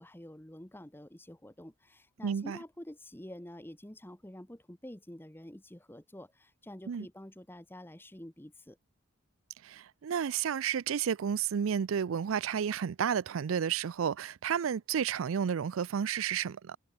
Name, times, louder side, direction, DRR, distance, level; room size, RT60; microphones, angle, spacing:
voice 1, 0.0-8.8, left 1 dB, 10° left, 1.1 m, -48 dB
voice 2, 2.2-2.6 6.9-7.1 9.6-16.8, right 7 dB, 80° right, 0.4 m, -31 dB
head